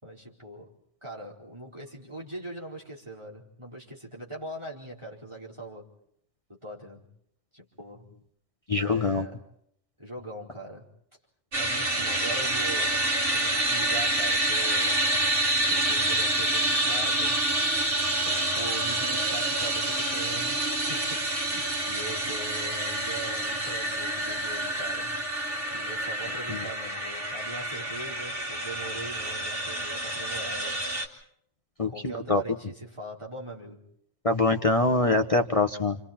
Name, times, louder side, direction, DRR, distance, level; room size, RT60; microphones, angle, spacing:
voice 1, 0.0-0.7 1.0-5.9 6.5-7.0 7.5-8.1 8.7-9.4 10.0-10.9 11.5-15.0 15.7-17.4 18.2-25.2 25.7-30.8 31.9-33.8, right 1 dB, 25° right, -2 dB, 4.4 m, -41 dB
voice 2, 8.7-9.3 26.5-26.6 31.8-32.4 34.2-36.0, left 3 dB, 30° left, 4 dB, 1.2 m, -24 dB
sound 1, 11.5-31.1, right 1 dB, 75° right, 3.4 m, -28 dB
29.5 x 27.5 x 4.4 m, 0.71 s
omnidirectional pair, 1.3 m